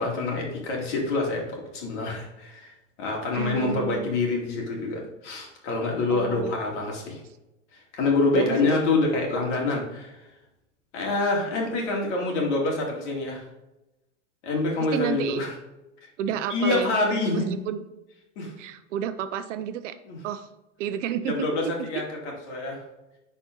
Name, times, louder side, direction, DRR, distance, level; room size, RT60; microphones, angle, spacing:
voice 1, 0.0-2.7 3.0-7.2 7.7-10.2 10.9-13.5 14.4-15.5 16.5-17.5 18.4-18.5 20.0-20.2 21.3-22.8, left 3 dB, 65° left, 0 dB, 2.7 m, -26 dB
voice 2, 3.3-4.1 6.1-6.5 8.3-8.8 14.9-15.4 16.2-16.9 17.3-17.8 18.6-20.0 20.2-20.5 20.8-21.9, right 9 dB, 75° right, 10 dB, 0.7 m, -30 dB
10.0 x 4.4 x 3.8 m, 0.95 s
supercardioid pair, 140°, 37 cm